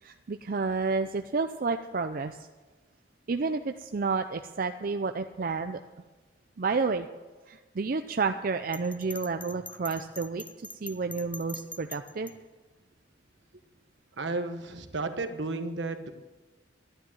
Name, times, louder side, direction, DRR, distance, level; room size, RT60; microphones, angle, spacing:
voice 1, 0.0-2.5 3.3-5.8 6.6-7.1 7.5-12.3, right 4 dB, 50° right, 7 dB, 0.5 m, -30 dB
Bell, 8.7-12.3, left 3 dB, 10° left, 0.4 m, -43 dB
voice 2, 14.2-16.1, right 3 dB, 75° right, 8 dB, 1.2 m, -33 dB
12.5 x 9.9 x 7.8 m, 1.2 s
head